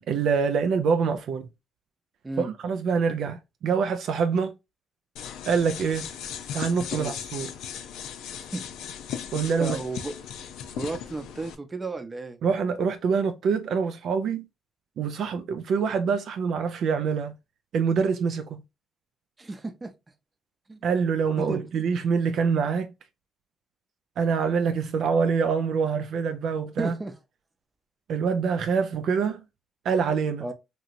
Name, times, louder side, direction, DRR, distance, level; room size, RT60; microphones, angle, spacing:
voice 1, 0.1-1.5 2.4-4.6 5.5-6.1 6.5-7.5 9.3-9.8 12.4-14.4 15.0-17.4 17.7-18.6 20.8-22.9 24.2-26.9 28.1-29.4 29.9-30.5, right 5 dB, 70° right, 0.3 m, -25 dB
sound 1, 5.2-11.6, left 9 dB, 90° left, 0.4 m, -37 dB
voice 2, 9.6-10.2 10.8-12.4 19.4-19.9 20.7-20.8 21.4-21.6 26.8-27.1 30.4-30.5, right 3 dB, 25° right, 0.6 m, -33 dB
3.0 x 2.7 x 2.5 m
cardioid pair, 90°, 0 cm